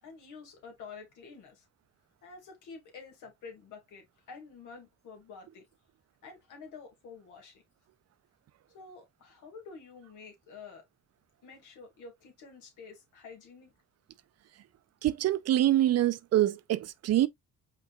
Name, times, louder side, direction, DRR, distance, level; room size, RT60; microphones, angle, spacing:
voice 1, 0.0-1.7 2.2-5.7 6.2-7.6 8.7-10.8 11.4-13.7, left 5 dB, 85° left, 2.1 m, -49 dB
voice 2, 15.0-17.3, right 13 dB, 55° right, 0.5 m, -25 dB
5.2 x 3.7 x 2.3 m
cardioid pair, 90°, 30 cm